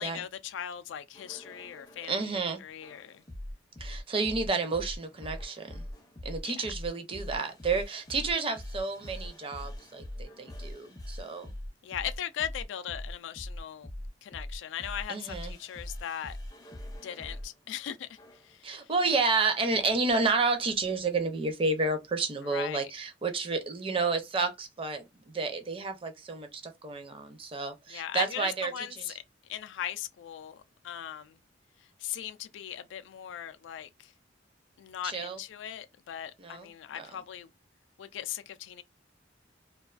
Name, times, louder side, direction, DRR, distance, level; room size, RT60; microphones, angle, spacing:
voice 1, 0.0-3.2 6.5-6.7 11.8-13.9 14.2-16.4 17.0-18.9 22.4-22.9 27.9-29.1 29.4-31.4 31.8-34.1 34.8-37.5 38.0-38.8, left 10 dB, 80° left, 0.3 m, -39 dB
sound 1, 1.1-2.1 2.8-17.5 18.2-18.5, left 1 dB, 20° left, 0.5 m, -42 dB
voice 2, 2.1-2.6 3.8-5.8 6.2-11.5 15.1-15.5 18.6-25.0 25.3-28.7 29.0-29.1 35.0-35.4 36.4-36.7 37.0-37.1, right 3 dB, 30° right, 0.5 m, -30 dB
2.3 x 2.3 x 2.3 m
head